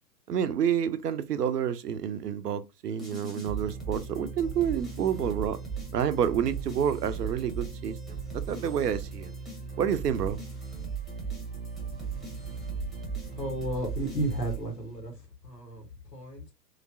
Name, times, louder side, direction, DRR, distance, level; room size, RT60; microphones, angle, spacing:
voice 1, 0.3-5.6 5.9-9.3 9.8-10.4, right 8 dB, 75° right, 0.7 m, -29 dB
sound 1, 3.0-15.1, right 5 dB, ahead, 0.9 m, -37 dB
voice 2, 13.3-16.5, right 1 dB, 85° left, 1.5 m, -34 dB
3.2 x 2.9 x 2.6 m
figure-of-eight pair, 110°, 48 cm